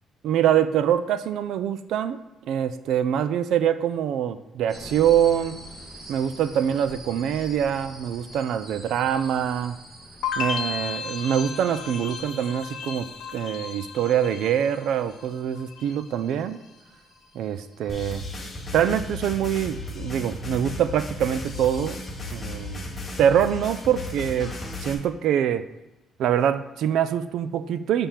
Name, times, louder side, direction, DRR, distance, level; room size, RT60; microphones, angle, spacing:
voice 1, 0.2-2.2 2.5-5.6 6.1-9.8 10.4-13.1 13.3-16.6 17.3-18.3 18.7-22.0 22.3-22.8 23.2-24.5 24.8-25.6 26.2-28.1, right 9 dB, 60° right, 13 dB, 0.4 m, -24 dB
sound 1, 4.7-19.0, equal, 20° right, 1.8 m, -46 dB
sound 2, 10.2-15.3 15.5-16.2, left 5 dB, 70° left, 0.7 m, -34 dB
sound 3, 17.9-24.9, left 2 dB, 20° left, 0.9 m, -35 dB
7.2 x 3.4 x 5.8 m, 1.0 s
cardioid pair, 170°, 0 cm